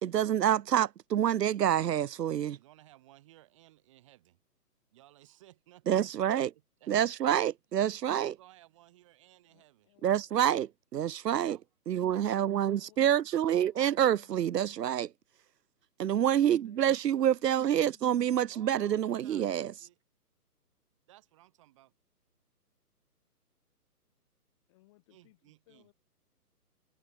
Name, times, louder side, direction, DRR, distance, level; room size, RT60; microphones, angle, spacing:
voice 1, 0.0-2.6 5.9-6.5 6.9-8.3 10.0-10.7 10.9-11.6 11.9-15.1 16.0-19.7, right 10 dB, 80° right, 0.7 m, -27 dB
voice 2, 1.7-2.1 2.5-4.4 4.9-6.4 6.8-6.9 8.1-10.0 11.4-11.6 18.5-20.0 21.1-21.9 25.1-25.9, right 16 dB, 20° right, 3.9 m, -59 dB
voice 3, 9.5-10.4 12.2-14.3 16.3-16.8 17.6-18.1 24.7-25.9, left 20 dB, 20° left, 7.1 m, -64 dB
hypercardioid pair, 175°, 48 cm